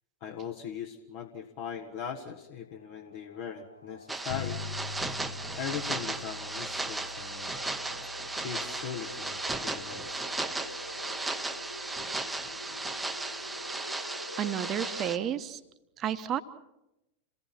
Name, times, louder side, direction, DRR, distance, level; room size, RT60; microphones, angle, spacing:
voice 1, 0.2-4.6 5.5-7.5 8.4-10.4, left 8 dB, 45° left, 2 dB, 1.6 m, -40 dB
sound 1, 2.4-15.3, left 1 dB, 85° left, 1.1 m, -47 dB
sound 2, 4.1-15.2, right 2 dB, 10° right, 1.1 m, -36 dB
Bass guitar, 4.3-14.0, left 4 dB, 65° left, 0.8 m, -45 dB
voice 2, 14.4-15.6 16.0-16.4, right 10 dB, 30° right, 11 dB, 1.3 m, -31 dB
28.0 x 18.5 x 5.9 m, 0.91 s
figure-of-eight pair, 90°, 0 cm